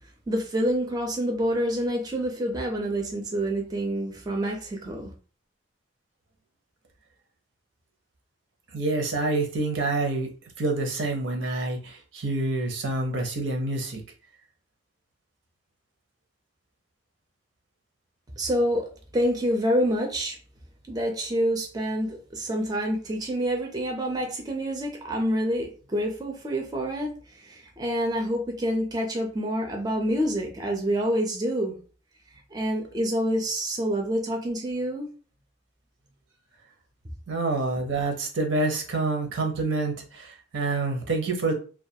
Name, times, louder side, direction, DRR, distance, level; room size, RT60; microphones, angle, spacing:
voice 1, 0.3-5.1 18.4-18.9 19.1-20.4 20.9-27.1 27.4-31.8 32.5-35.1, equal, 20° right, 1 dB, 0.4 m, -27 dB
voice 2, 8.7-10.3 10.6-14.0 37.3-41.5, right 2 dB, 75° right, 3 dB, 0.6 m, -27 dB
2.3 x 2.2 x 2.7 m, 0.38 s
head